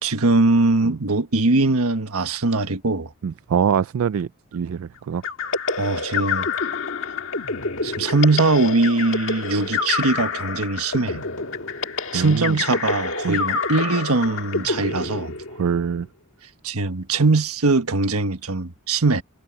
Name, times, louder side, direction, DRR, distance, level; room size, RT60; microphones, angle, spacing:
voice 1, 0.0-3.1 5.8-6.5 7.8-11.2 12.1-15.4 16.6-19.2, right 3 dB, 85° right, 1.4 m, -21 dB
voice 2, 3.2-5.2 12.1-12.6 13.2-13.4 15.6-16.1, right 7 dB, 70° right, 0.4 m, -24 dB
sound 1, 5.2-15.8, left 4 dB, 65° left, 1.7 m, -27 dB
head